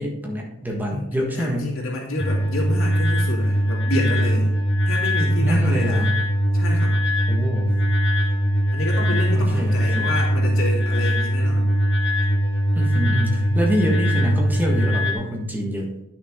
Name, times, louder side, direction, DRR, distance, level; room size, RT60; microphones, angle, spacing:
voice 1, 0.0-1.7 5.4-6.1 7.3-7.8 9.4-10.1 12.7-15.9, equal, 10° right, -1 dB, 1.5 m, -26 dB
voice 2, 0.9-4.5 4.8-6.1 6.5-7.0 8.7-11.7, left 1 dB, 85° left, -3 dB, 2.8 m, -29 dB
sound 1, 2.2-15.1, equal, 60° left, 2.0 m, -21 dB
10.0 x 6.4 x 3.7 m, 0.93 s
head